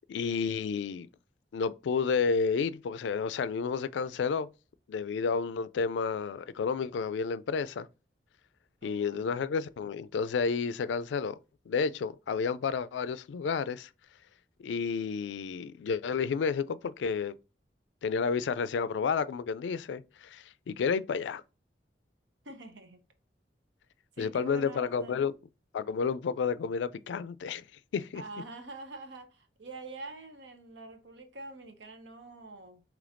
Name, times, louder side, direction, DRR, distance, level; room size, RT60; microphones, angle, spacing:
voice 1, 0.1-1.1 1.5-4.5 4.9-7.9 8.8-11.4 11.7-13.9 14.6-17.4 18.0-21.4 24.2-25.3 25.7-27.6 27.9-28.2, left 5 dB, 90° left, 0.3 m, -31 dB
voice 2, 8.8-9.5 22.4-23.0 24.1-25.2 28.1-32.8, right 3 dB, 85° right, 0.9 m, -46 dB
5.0 x 3.1 x 2.5 m
head